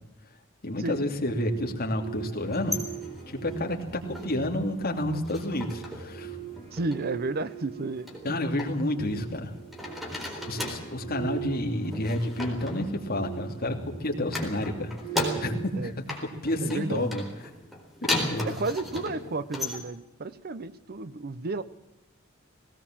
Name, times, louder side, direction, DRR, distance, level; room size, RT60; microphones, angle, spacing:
voice 1, 0.6-2.8 3.3-3.8 4.1-6.4 8.2-9.5 10.0-10.2 10.5-15.9 16.4-17.3 18.0-18.6, left 1 dB, 45° left, 3 dB, 2.8 m, -30 dB
sound 1, 0.9-15.6, right 9 dB, 30° right, 6.7 m, -41 dB
sound 2, 2.4-4.6 4.9-6.2 6.4-7.0 8.1-9.4 9.7-11.0 11.8-13.8 14.2-15.8 16.1-19.8, left 1 dB, ahead, 4.1 m, -36 dB
voice 2, 6.7-8.4 15.7-15.9 16.6-17.1 18.4-21.6, right 3 dB, 50° right, 15 dB, 0.8 m, -32 dB
19.0 x 18.0 x 7.5 m, 0.92 s
head